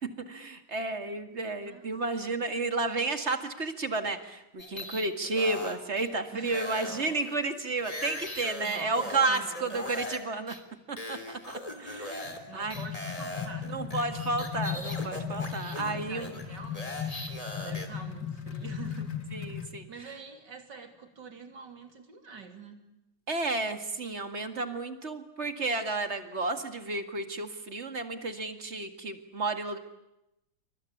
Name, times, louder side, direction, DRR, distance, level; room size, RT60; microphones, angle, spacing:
voice 1, 0.0-10.6 10.9-12.1 12.5-12.8 13.7-16.4 19.3-19.9 23.3-29.8, right 3 dB, 35° right, 7 dB, 2.2 m, -32 dB
sound 1, 4.6-6.1 6.4-10.2 10.5-10.6 11.0-12.4 12.7-17.9, left 1 dB, 20° left, 3.1 m, -40 dB
voice 2, 6.3-7.1 8.6-9.9 12.0-13.8 15.7-17.3 17.6-19.2 19.9-22.8, right 4 dB, 65° right, 6 dB, 3.5 m, -46 dB
sound 2, 12.2-19.8, left 8 dB, 75° left, 2.8 m, -37 dB
27.5 x 24.5 x 8.7 m, 0.86 s
omnidirectional pair, 2.0 m